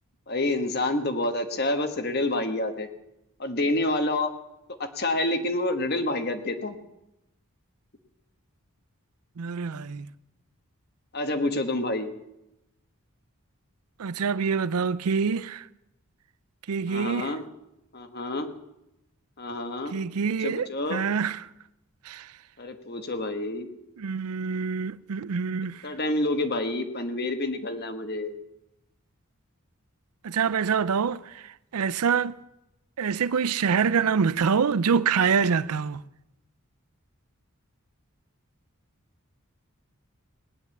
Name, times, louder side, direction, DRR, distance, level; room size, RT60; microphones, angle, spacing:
voice 1, 0.3-2.9 3.4-4.3 5.0-6.8 11.1-12.1 16.9-17.4 17.9-18.5 19.4-19.9 20.4-21.0 22.6-23.7 25.8-28.4, left 2 dB, 45° left, 1.4 m, -28 dB
voice 2, 9.4-10.1 14.0-15.7 16.7-17.4 19.9-21.5 22.0-22.3 24.0-25.8 30.2-32.4 33.0-36.0, right 6 dB, 85° right, 0.5 m, -26 dB
18.5 x 10.5 x 7.2 m
head